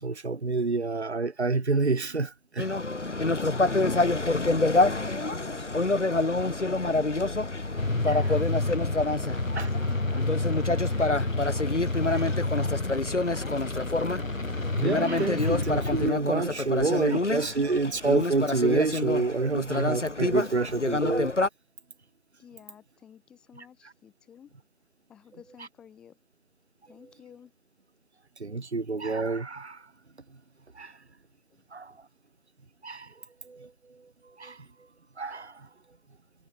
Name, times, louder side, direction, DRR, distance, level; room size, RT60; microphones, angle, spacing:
voice 1, 0.0-2.7 8.1-8.2 9.6-9.7 12.1-12.2 14.7-21.3 28.4-29.8 30.7-30.9 31.7-31.9 32.8-33.1 33.4-33.7 34.4-34.6 35.2-35.6, right 3 dB, 55° right, 1.4 m, -28 dB
sound 1, 2.6-21.5, left 2 dB, 65° left, 3.8 m, -27 dB
voice 2, 3.3-7.6 7.9-11.4 11.9-12.4 13.4-13.6 22.4-24.5 25.1-26.2 26.9-27.5 30.8-30.9 31.5-32.0, left 8 dB, ahead, 4.3 m, -51 dB
sound 2, 7.8-16.1, left 2 dB, 85° left, 3.6 m, -29 dB
figure-of-eight pair, 170°, 39 cm